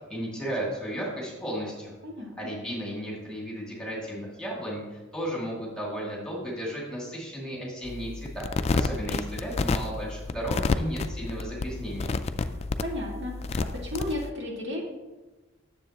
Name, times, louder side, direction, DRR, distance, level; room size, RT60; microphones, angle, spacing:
voice 1, 0.1-1.9 2.4-8.5 8.7-12.2, equal, 5° left, -4 dB, 2.2 m, -34 dB
sound 1, 7.8-14.3, left 3 dB, 30° left, 0.3 m, -30 dB
voice 2, 12.4-13.3 13.8-14.9, left 1 dB, 65° right, -2 dB, 1.9 m, -34 dB
9.7 x 7.3 x 2.9 m, 1.2 s
head